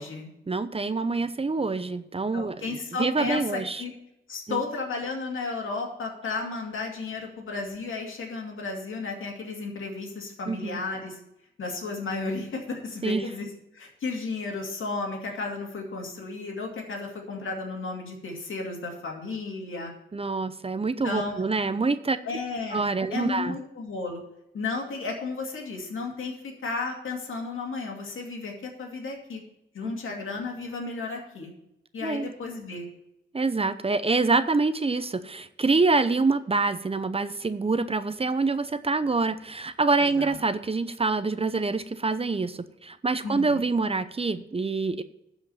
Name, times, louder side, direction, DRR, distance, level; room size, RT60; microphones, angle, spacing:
voice 1, 0.5-3.8 4.5-4.6 10.5-10.8 13.0-13.2 20.1-22.2 22.7-23.6 29.8-29.9 32.0-32.3 33.3-45.0, right 3 dB, 30° right, 13 dB, 0.6 m, -26 dB
voice 2, 2.3-3.9 4.3-11.2 11.6-13.5 13.7-19.9 21.0-21.4 22.2-22.8 23.1-24.2 24.5-29.4 29.7-31.5 31.9-32.8 40.0-40.4 43.2-43.6, left 3 dB, 80° left, 1 dB, 2.4 m, -33 dB
12.0 x 5.1 x 7.1 m, 0.84 s
cardioid pair, 70°, 20 cm